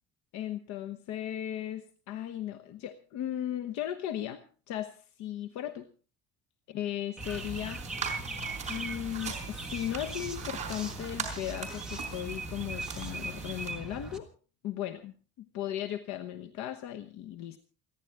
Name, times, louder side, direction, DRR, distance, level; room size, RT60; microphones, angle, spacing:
voice 1, 0.3-5.9 6.7-7.8 8.7-14.3 14.6-17.6, left 11 dB, 65° left, 9 dB, 1.1 m, -37 dB
sound 1, 7.2-14.2, right 2 dB, ahead, 1.5 m, -39 dB
sound 2, 7.2-13.7, right 6 dB, 20° right, 4.4 m, -41 dB
29.0 x 11.0 x 3.5 m, 0.39 s
cardioid pair, 160°, 31 cm